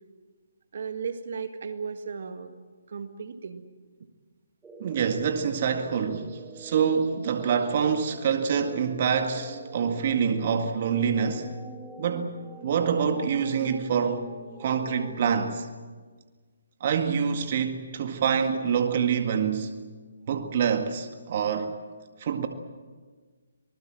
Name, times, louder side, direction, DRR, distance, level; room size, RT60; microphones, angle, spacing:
voice 1, 0.7-2.5 2.9-3.6, right 6 dB, 60° right, 1.9 m, -35 dB
sound 1, 4.6-15.6, right 3 dB, 5° right, 2.1 m, -45 dB
voice 2, 4.8-11.5 12.0-14.3 14.6-15.7 16.8-19.7 20.3-21.8 22.2-22.5, right 7 dB, 45° right, 1.9 m, -26 dB
25.5 x 20.0 x 7.7 m
hypercardioid pair, 155°, 0 cm